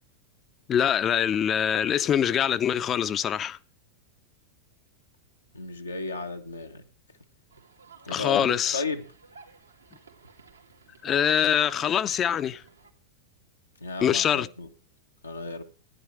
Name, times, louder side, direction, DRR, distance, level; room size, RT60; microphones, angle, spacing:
voice 1, 0.7-3.6 8.1-8.8 11.0-12.6 14.0-14.5, left 9 dB, 30° left, 0.7 m, -24 dB
voice 2, 5.5-6.8 8.0-9.0 13.8-14.7 15.2-15.6, left 3 dB, 90° left, 1.5 m, -34 dB
sound 1, 7.5-12.9, right 4 dB, 85° right, 2.4 m, -53 dB
15.5 x 10.0 x 3.5 m
figure-of-eight pair, 95°, 0 cm